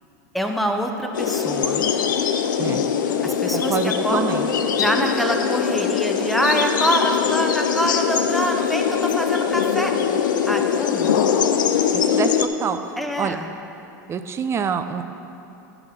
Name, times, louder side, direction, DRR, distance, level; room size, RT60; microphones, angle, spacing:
voice 1, 0.3-1.8 3.2-4.4 4.8-9.9 10.5-11.2 13.0-13.5, equal, ahead, 3 dB, 0.9 m, -25 dB
sound 1, 1.1-12.5, left 7 dB, 85° left, 0.7 m, -22 dB
voice 2, 3.5-4.5 11.9-12.8 13.2-13.4 14.1-15.0, right 6 dB, 25° right, 9 dB, 0.6 m, -26 dB
10.5 x 5.9 x 6.7 m, 2.9 s
hypercardioid pair, 110°, 10 cm